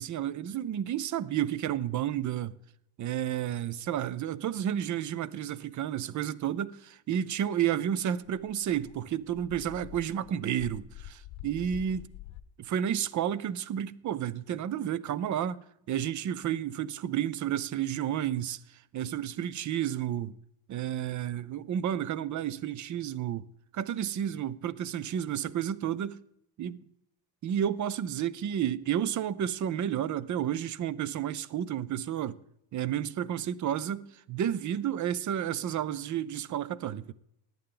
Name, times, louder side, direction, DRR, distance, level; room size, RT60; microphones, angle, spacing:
voice 1, 0.0-2.6 3.0-12.1 12.7-15.6 15.9-20.4 20.7-23.5 23.7-26.2 26.6-26.8 27.4-32.4 32.7-37.1, right 10 dB, 40° right, 0.4 m, -31 dB
Dog, 7.8-7.9 8.2-12.4, left 12 dB, 80° left, 0.7 m, -46 dB
18.0 x 9.1 x 3.8 m
cardioid pair, 165°, 46 cm